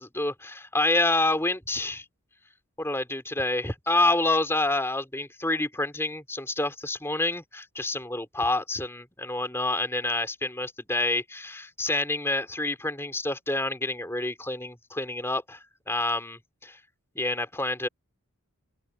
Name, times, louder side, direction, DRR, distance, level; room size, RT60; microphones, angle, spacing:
voice 1, 0.0-2.0 2.8-15.6 15.9-16.8 17.2-17.9, left 2 dB, 10° left, 3.6 m, -28 dB
open air
head